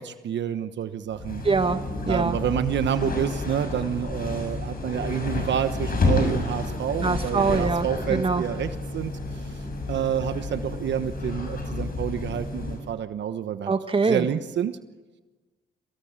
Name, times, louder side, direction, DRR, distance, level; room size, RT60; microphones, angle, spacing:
voice 1, 0.0-1.4 2.1-9.5 9.9-13.7 14.0-14.7, right 9 dB, 65° right, 10 dB, 1.2 m, -28 dB
sound 1, 1.1-12.9, left 2 dB, 45° left, 6.8 m, -30 dB
voice 2, 1.4-1.8 2.1-2.4 7.0-8.4 13.7-14.3, right 4 dB, 25° right, 8 dB, 1.7 m, -23 dB
23.5 x 17.5 x 8.9 m, 1.2 s
cardioid pair, 90°, 20 cm